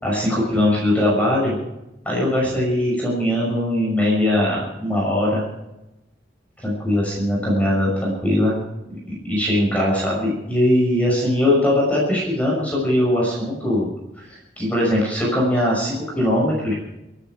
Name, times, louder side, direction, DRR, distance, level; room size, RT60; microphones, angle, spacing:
voice 1, 0.0-1.6 2.0-5.4 6.6-8.6 9.1-13.9 14.3-16.7, left 1 dB, 10° left, -4 dB, 6.1 m, -20 dB
28.0 x 9.9 x 4.7 m, 0.93 s
head